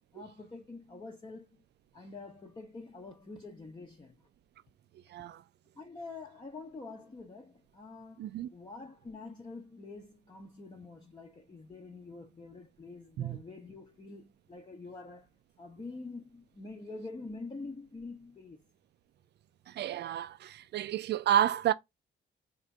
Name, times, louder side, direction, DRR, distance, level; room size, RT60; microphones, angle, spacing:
voice 1, 0.1-1.6 1.9-4.2 5.8-15.3 15.6-18.6, left 3 dB, 25° left, 0.7 m, -46 dB
voice 2, 5.1-5.4 8.2-8.5 13.2-13.4 19.7-21.7, right 11 dB, 60° right, 0.5 m, -30 dB
3.7 x 2.6 x 4.4 m
cardioid pair, 90°, 20 cm